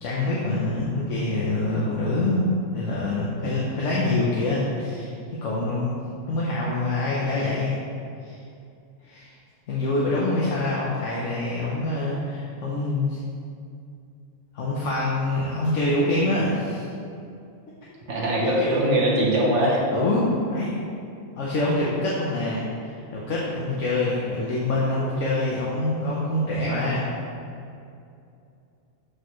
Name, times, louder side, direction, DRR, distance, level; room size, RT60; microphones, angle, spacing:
voice 1, 0.0-5.1 5.4-5.9 6.3-7.8 8.2-8.4 9.0-9.3 9.7-13.2 14.5-16.9 18.4-18.8 19.9-20.7 21.4-27.1, left 2 dB, 70° left, -6 dB, 1.2 m, -25 dB
voice 2, 18.1-19.8, right 1 dB, 65° right, -4 dB, 1.6 m, -21 dB
6.8 x 6.6 x 3.1 m, 2.5 s
omnidirectional pair, 1.3 m